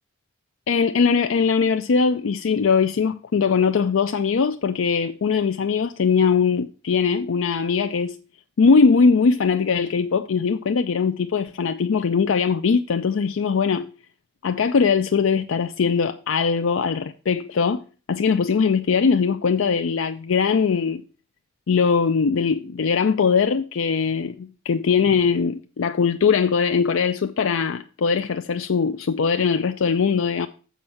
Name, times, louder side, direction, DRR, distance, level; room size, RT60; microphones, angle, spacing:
voice 1, 0.7-8.2 8.6-13.9 14.4-17.8 18.1-21.0 21.7-30.5, left 5 dB, 80° left, 0.5 m, -21 dB
7.2 x 5.3 x 7.1 m
head